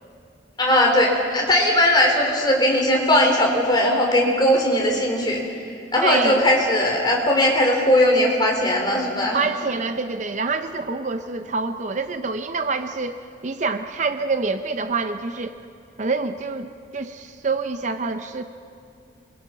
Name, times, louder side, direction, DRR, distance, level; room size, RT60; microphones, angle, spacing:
voice 1, 0.6-5.4 5.9-9.4, left 1 dB, 25° left, 0 dB, 3.5 m, -19 dB
voice 2, 6.0-6.5 9.3-15.6 16.0-18.4, right 4 dB, 40° right, 9 dB, 0.6 m, -26 dB
26.0 x 22.0 x 5.7 m, 2.5 s
head